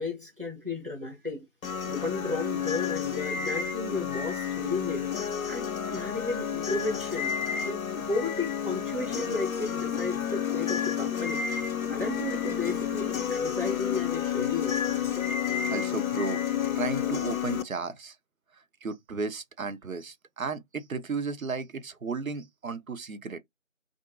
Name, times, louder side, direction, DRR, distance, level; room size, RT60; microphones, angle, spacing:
voice 1, 0.0-1.5 1.8-5.1 5.5-7.4 7.6-11.4 11.9-14.8, left 3 dB, 40° right, 0.8 m, -33 dB
sound 1, 1.6-17.6, left 8 dB, 85° left, 0.6 m, -30 dB
voice 2, 15.7-16.4 16.7-18.2 18.8-23.4, right 4 dB, 85° right, 0.7 m, -34 dB
2.5 x 2.4 x 2.4 m
figure-of-eight pair, 175°, 40 cm